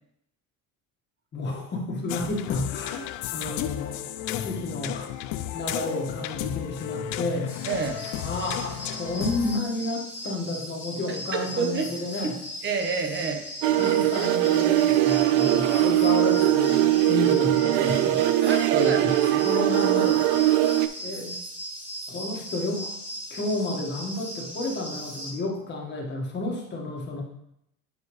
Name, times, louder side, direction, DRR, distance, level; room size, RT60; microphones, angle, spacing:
voice 1, 1.3-4.0 4.2-5.1 5.5-7.5 8.1-12.3 13.8-19.1 19.4-20.7 21.0-21.4 22.1-22.9 23.3-27.2, left 2 dB, 35° left, 0 dB, 1.6 m, -31 dB
sound 1, 2.1-9.6, left 12 dB, 85° left, 0.5 m, -33 dB
sound 2, 7.5-25.3, equal, 5° right, 1.6 m, -38 dB
voice 2, 7.7-8.0 11.1-11.9 12.6-13.4 18.4-19.5, right 5 dB, 40° right, 4 dB, 1.1 m, -28 dB
sound 3, 13.6-20.9, right 14 dB, 90° right, 0.5 m, -21 dB
8.0 x 4.8 x 3.2 m, 0.77 s
cardioid pair, 130°, 31 cm